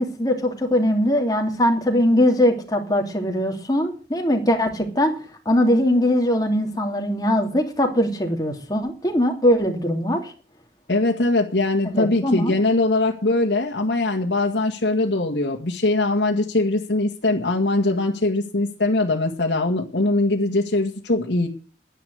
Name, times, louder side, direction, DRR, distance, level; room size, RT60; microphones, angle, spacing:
voice 1, 0.0-5.1 5.4-10.3 11.8-12.5, equal, 20° left, 2 dB, 3.1 m, -21 dB
voice 2, 10.9-21.5, left 2 dB, 75° left, 0 dB, 1.9 m, -21 dB
11.0 x 10.5 x 7.9 m, 0.39 s
head